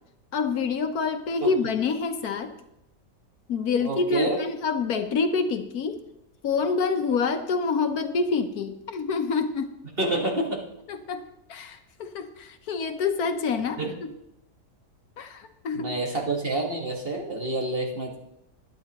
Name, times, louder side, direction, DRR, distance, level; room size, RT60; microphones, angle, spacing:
voice 1, 0.3-2.5 3.5-6.0 6.4-9.7 10.9-14.1 15.2-15.9, left 4 dB, 70° left, 7 dB, 1.4 m, -27 dB
voice 2, 3.8-4.4 10.0-10.7 13.8-14.0 15.7-18.2, right 2 dB, 40° right, 1 dB, 1.7 m, -28 dB
21.0 x 10.0 x 3.0 m, 0.84 s
omnidirectional pair, 1.6 m